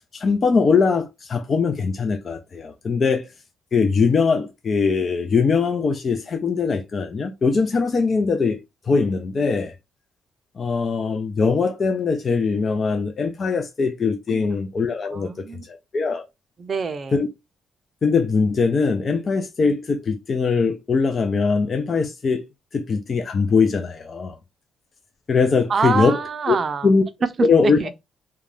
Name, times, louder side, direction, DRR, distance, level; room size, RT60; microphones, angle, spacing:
voice 1, 0.1-3.3 3.7-8.6 8.9-9.7 10.6-15.3 15.7-16.2 17.1-17.3 18.0-22.5 22.7-24.4 25.3-26.2 26.5-26.6 26.8-27.0 27.4-27.8, left 4 dB, 40° left, 0.4 m, -21 dB
voice 2, 15.1-15.6 16.6-17.2 25.7-26.9 27.4-27.9, right 5 dB, 45° right, 0.4 m, -26 dB
2.4 x 2.2 x 3.2 m
cardioid pair, 90°, 0 cm